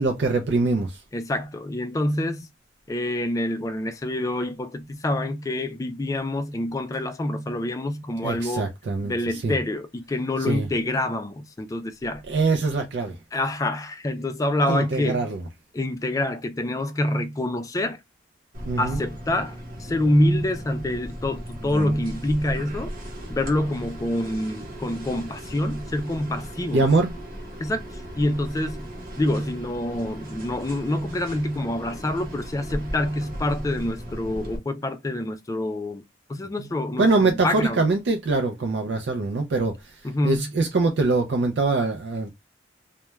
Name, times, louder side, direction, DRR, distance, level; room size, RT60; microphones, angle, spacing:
voice 1, 0.0-1.0 8.2-9.5 10.5-10.7 12.3-13.2 14.7-15.4 18.7-19.0 26.7-27.1 36.6-36.7 37.0-42.3, right 3 dB, 75° right, 0.4 m, -23 dB
voice 2, 1.1-2.5 2.9-8.7 9.0-12.2 13.3-15.3 15.7-18.0 18.8-22.9 23.3-26.8 27.6-28.9 29.2-36.0 36.3-37.8 40.0-40.6, left 1 dB, 20° left, 0.3 m, -26 dB
sound 1, 18.5-34.6, equal, 55° right, 0.9 m, -37 dB
2.3 x 2.1 x 3.0 m
head